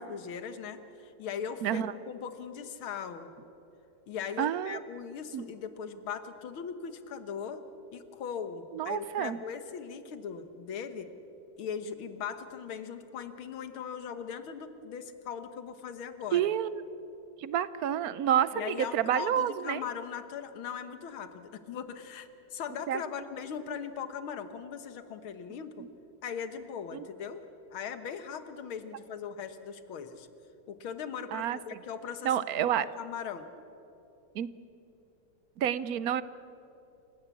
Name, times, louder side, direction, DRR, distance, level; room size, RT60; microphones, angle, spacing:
voice 1, 0.0-3.3 4.1-7.6 7.9-11.1 11.6-16.5 18.5-25.9 26.2-27.4 27.7-30.3 30.7-33.5, left 7 dB, 80° left, 10 dB, 2.1 m, -39 dB
voice 2, 1.6-1.9 4.4-4.8 5.3-5.4 8.7-9.4 16.3-16.8 17.4-19.8 22.9-23.0 25.8-25.9 26.9-27.0 31.3-31.6 32.2-32.9 34.3-34.5 35.6-36.2, right 10 dB, 65° right, 16 dB, 0.9 m, -29 dB
28.0 x 16.5 x 8.4 m, 3.0 s
omnidirectional pair, 2.2 m